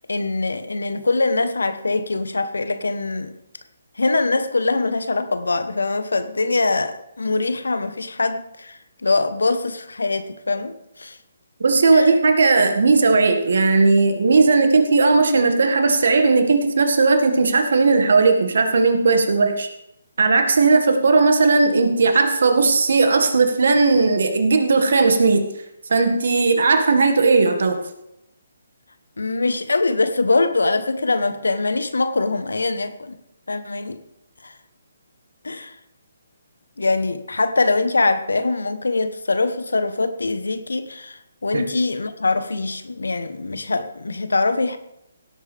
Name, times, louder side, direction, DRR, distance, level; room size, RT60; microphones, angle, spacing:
voice 1, 0.1-3.3 4.0-11.2 11.9-12.1 29.2-33.2 33.5-34.0 34.4-34.5 35.4-35.7 36.8-44.8, left 3 dB, 80° left, 1.0 m, -23 dB
voice 2, 11.6-19.7 20.2-25.4 25.9-27.8 41.5-41.6, right 3 dB, 65° right, 1.8 m, -17 dB
17.0 x 8.4 x 3.5 m
figure-of-eight pair, 145°, 0 cm